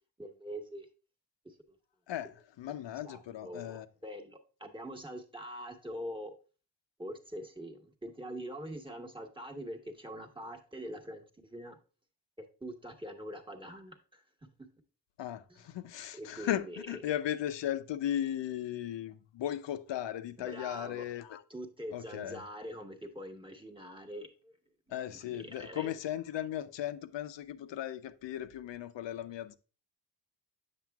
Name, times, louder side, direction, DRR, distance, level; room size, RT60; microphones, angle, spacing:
voice 1, 0.2-0.9 1.4-1.5 3.0-6.3 7.0-11.2 11.5-11.8 12.4-14.2 14.6-14.7 15.5-15.7 16.1-17.0 20.4-21.1 21.5-24.5 25.1-25.9, equal, 10° right, 1.1 m, -44 dB
voice 2, 2.1-3.9 15.2-21.4 21.9-22.4 24.9-29.5, left 11 dB, 80° left, 0.6 m, -37 dB
7.5 x 6.7 x 2.3 m
cardioid pair, 90°, 43 cm